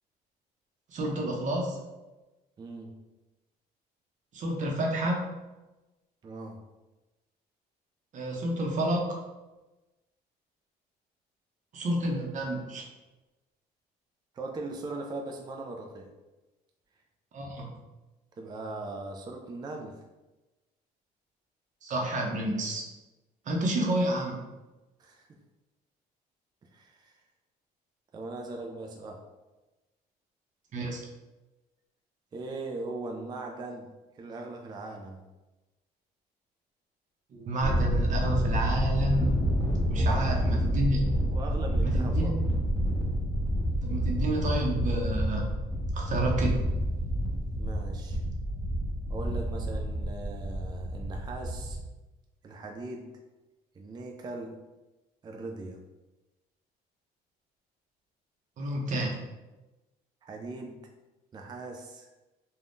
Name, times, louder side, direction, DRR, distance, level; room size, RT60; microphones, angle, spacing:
voice 1, 0.9-1.8 4.3-5.3 8.1-9.2 11.7-12.8 17.3-17.7 21.8-22.8 23.5-24.4 30.7-31.0 37.3-39.3 39.9-41.0 41.8-42.3 43.8-45.5 45.9-46.6 58.6-59.2, right 1 dB, 45° right, 0 dB, 0.7 m, -29 dB
voice 2, 2.6-3.0 6.2-6.6 14.3-16.1 18.4-20.0 25.0-25.3 26.6-27.2 28.1-29.2 32.3-33.9 34.2-35.2 40.0-40.4 41.3-42.5 47.6-48.2 49.1-51.8 52.4-53.1 53.8-54.6 55.2-55.8 60.2-60.9 61.3-62.1, right 2 dB, 25° right, 2 dB, 0.3 m, -39 dB
Thunder, 37.6-51.8, equal, 25° left, 0.7 m, -28 dB
2.6 x 2.2 x 3.4 m, 1.1 s
cardioid pair, 110°, 17 cm